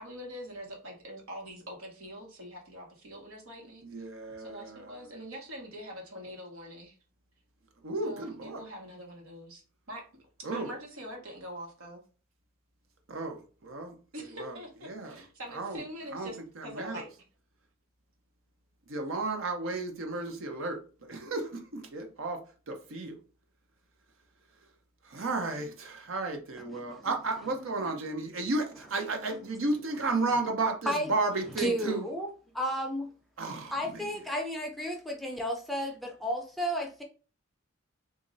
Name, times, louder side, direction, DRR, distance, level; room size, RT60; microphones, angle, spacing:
voice 1, 0.0-3.8 4.4-6.9 8.0-9.6 9.9-10.0 10.4-12.0 14.1-17.1, equal, 85° right, 1.3 m, -44 dB
voice 2, 3.8-5.0 7.8-8.6 10.4-10.7 13.1-13.9 14.4-14.6 14.9-15.2 15.5-15.8 16.1-16.3 16.6-17.0 18.9-22.4 22.7-23.2 25.1-32.1 33.4-33.7, right 3 dB, 70° right, 0.8 m, -33 dB
voice 3, 26.6-27.1 27.8-28.0 30.8-31.1 31.6-32.3 32.5-33.1 33.7-37.0, equal, ahead, 0.5 m, -33 dB
3.1 x 2.5 x 3.9 m
head